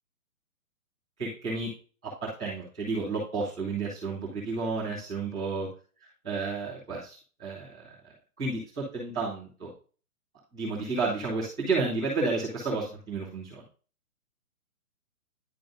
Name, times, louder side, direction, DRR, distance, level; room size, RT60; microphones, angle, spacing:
voice 1, 1.2-1.7 2.0-5.7 6.2-7.9 8.4-9.7 10.5-13.6, right 3 dB, 5° right, -13 dB, 0.6 m, -31 dB
10.5 x 5.0 x 2.5 m, 0.38 s
hypercardioid pair, 170°, 44 cm